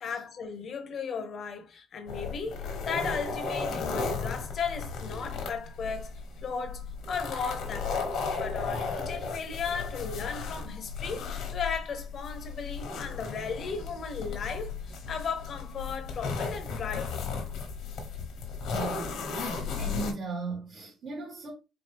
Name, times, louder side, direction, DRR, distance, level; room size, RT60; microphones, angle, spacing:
voice 1, 0.0-14.8 15.1-17.2, left 5 dB, 60° left, 0.9 m, -36 dB
sound 1, 2.1-20.1, left 4 dB, 85° left, 1.2 m, -35 dB
voice 2, 18.7-19.5 19.8-21.5, right 3 dB, 70° right, 1.8 m, -37 dB
4.4 x 2.5 x 3.3 m
cardioid pair, 90°, 0 cm